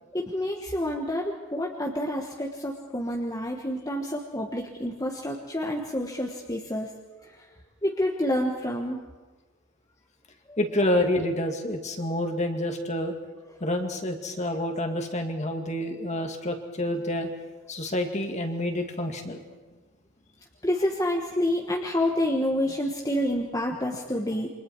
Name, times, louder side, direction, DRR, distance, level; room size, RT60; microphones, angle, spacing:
voice 1, 0.1-6.9 7.8-9.0 10.5-10.6 20.6-24.5, left 1 dB, 15° left, -1 dB, 1.4 m, -28 dB
voice 2, 10.6-13.1 13.6-17.3 17.7-19.4, left 1 dB, 30° left, 4 dB, 2.1 m, -28 dB
28.5 x 25.0 x 4.7 m, 1.3 s
head